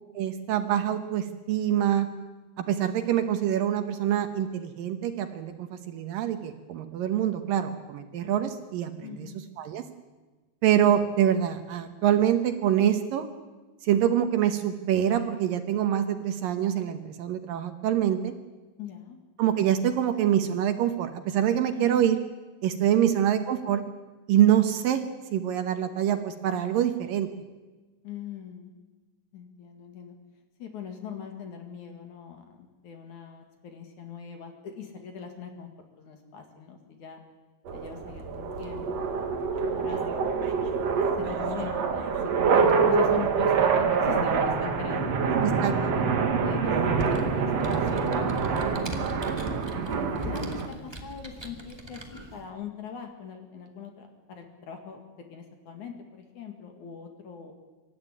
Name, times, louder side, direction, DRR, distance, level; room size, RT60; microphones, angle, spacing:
voice 1, 0.2-2.1 2.6-9.3 9.6-9.8 10.6-13.3 13.8-18.3 19.4-22.2 22.6-23.8 24.3-25.0 25.3-27.3 45.6-46.3, right 10 dB, 70° right, 8 dB, 2.6 m, -25 dB
voice 2, 9.0-9.4 18.8-19.2 21.7-22.0 22.9-23.3 28.0-28.7 29.3-30.2 30.6-35.7 36.0-37.2 37.7-39.1 39.6-40.3 41.0-45.5 46.4-49.6 50.2-52.0 52.3-55.0 55.3-57.5, left 7 dB, 55° left, 4 dB, 3.1 m, -41 dB
sound 1, 37.7-50.7, right 5 dB, 50° right, 2.3 m, -26 dB
Computer keyboard, 46.6-52.4, equal, 15° right, 0.9 m, -41 dB
24.5 x 13.5 x 9.9 m, 1.3 s
omnidirectional pair, 4.5 m